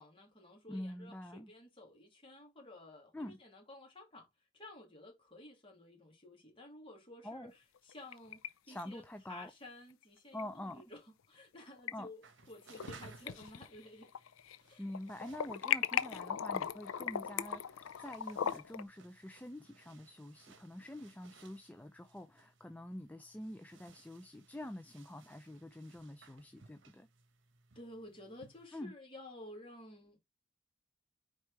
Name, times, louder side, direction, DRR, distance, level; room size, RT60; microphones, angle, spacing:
voice 1, 0.0-4.3 4.5-7.5 7.8-9.0 9.3-14.1 14.6-14.8 27.7-30.2, left 1 dB, 25° left, 2.4 m, -53 dB
voice 2, 0.7-1.5 3.1-3.4 7.2-7.5 8.7-9.5 10.3-10.8 11.9-12.1 14.8-27.1 28.7-28.9, left 1 dB, 10° left, 0.4 m, -46 dB
sound 1, 7.8-8.5 8.8-8.9 10.4-10.5 11.5-11.9 12.4-12.9 13.3-14.6 14.9-18.8, left 9 dB, 85° left, 0.5 m, -37 dB
sound 2, 12.2-28.7, right 4 dB, 65° right, 1.0 m, -61 dB
4.8 x 4.2 x 4.7 m
head